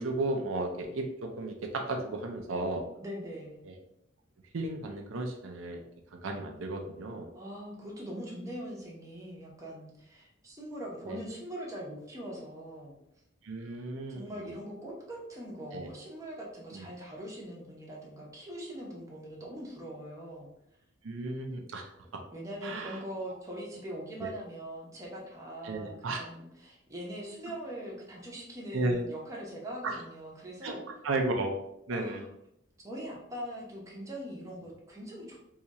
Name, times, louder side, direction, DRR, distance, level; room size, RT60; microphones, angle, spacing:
voice 1, 0.0-2.8 3.6-3.7 4.5-5.8 6.1-7.3 11.1-11.2 13.4-14.3 15.7-15.9 16.7-16.9 21.0-22.2 22.6-23.0 24.2-24.3 25.6-26.2 28.7-29.0 29.8-30.0 30.6-30.7 31.0-31.5 31.9-32.2, right 2 dB, 80° right, 3 dB, 0.5 m, -34 dB
voice 2, 3.0-3.6 7.3-13.0 14.1-20.5 22.3-30.8 31.9-32.3 32.8-35.4, right 1 dB, 15° right, -3 dB, 0.8 m, -42 dB
2.8 x 2.4 x 4.1 m, 0.78 s
head